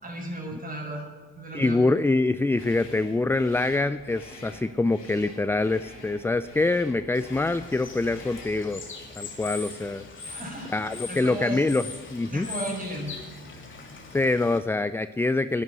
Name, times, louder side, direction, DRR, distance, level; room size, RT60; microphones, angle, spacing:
voice 1, 0.0-1.1 1.3-2.0 10.2-10.7 11.1-11.6 12.3-13.1, right 1 dB, 30° right, 1 dB, 5.8 m, -35 dB
voice 2, 1.5-8.8 9.2-10.1 10.7-12.5 14.1-15.6, left 2 dB, 10° left, 13 dB, 0.4 m, -25 dB
sound 1, 2.5-8.6, left 2 dB, 85° left, 5.7 m, -47 dB
Bird / Water, 7.1-14.6, left 3 dB, 40° left, 3.3 m, -41 dB
11.5 x 11.0 x 9.4 m, 1.4 s
cardioid pair, 90°, 30 cm